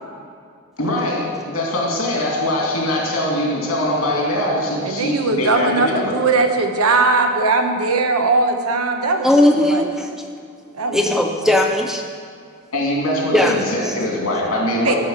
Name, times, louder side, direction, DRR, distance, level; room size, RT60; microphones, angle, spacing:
voice 1, 0.8-6.2 12.7-15.0, left 1 dB, 75° left, -3 dB, 2.6 m, -22 dB
voice 2, 4.8-9.3 9.7-9.8 10.7-11.0 11.3-11.5 14.8-15.0, right 3 dB, 90° right, 5 dB, 1.0 m, -19 dB
voice 3, 9.2-10.1 10.9-12.0 13.3-13.6 13.9-14.0, left 1 dB, ahead, 3 dB, 0.4 m, -17 dB
12.5 x 5.0 x 6.5 m, 2.3 s
head